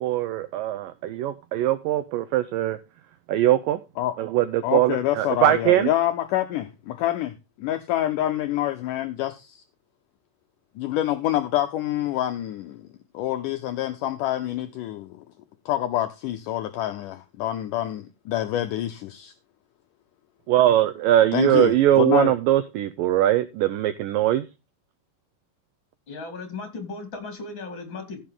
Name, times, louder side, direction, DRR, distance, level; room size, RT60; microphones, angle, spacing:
voice 1, 0.0-2.8 3.3-3.8 4.2-5.9 20.5-24.5, right 13 dB, 85° right, 2.0 m, -21 dB
voice 2, 4.6-9.6 10.8-12.9 13.1-15.3 15.7-19.3 21.3-22.3, left 13 dB, 85° left, 1.8 m, -27 dB
voice 3, 26.1-28.2, left 3 dB, 35° left, 3.0 m, -36 dB
15.0 x 6.6 x 3.7 m
omnidirectional pair, 4.6 m